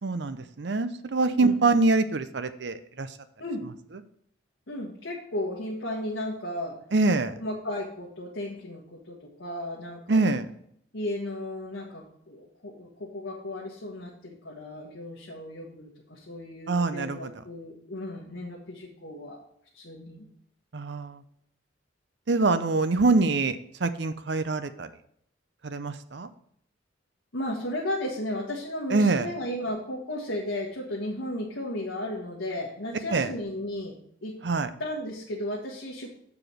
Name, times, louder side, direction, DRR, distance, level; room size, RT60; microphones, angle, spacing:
voice 1, 0.0-3.1 6.9-7.3 10.1-10.4 16.7-17.3 20.7-21.2 22.3-24.9 25.6-26.3 28.9-29.3 33.1-33.3 34.4-34.7, right 3 dB, 65° right, 11 dB, 0.6 m, -25 dB
voice 2, 4.7-6.8 7.4-10.3 10.9-19.4 19.7-20.3 27.3-34.3 34.8-36.1, left 1 dB, 80° left, -4 dB, 1.4 m, -34 dB
7.1 x 4.9 x 6.1 m, 0.68 s
head